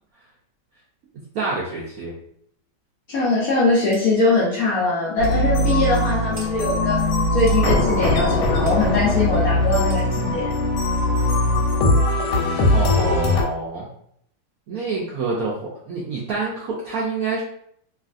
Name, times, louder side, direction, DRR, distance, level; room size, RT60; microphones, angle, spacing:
voice 1, 1.3-2.1 12.7-13.9 14.7-17.4, right 3 dB, 75° right, -5 dB, 0.8 m, -27 dB
voice 2, 3.1-7.0 7.3-10.5, left 2 dB, 65° left, -5 dB, 0.9 m, -21 dB
sound 1, 3.9-4.1 4.6-4.7 5.2-5.4 6.4-6.5 7.5-7.6 8.7-8.8 9.9-10.1, right 2 dB, 40° right, 0.8 m, -41 dB
sound 2, 5.2-13.4, left 2 dB, 90° left, 1.5 m, -20 dB
3.1 x 2.5 x 2.4 m, 0.67 s
omnidirectional pair, 2.1 m